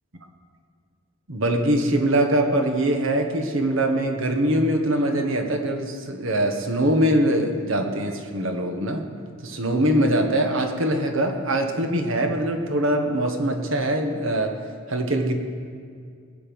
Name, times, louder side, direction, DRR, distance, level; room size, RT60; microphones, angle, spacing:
voice 1, 1.3-9.1 9.4-14.6 14.9-15.3, right 1 dB, 65° right, 4 dB, 1.4 m, -23 dB
20.5 x 8.5 x 5.4 m, 2.2 s
head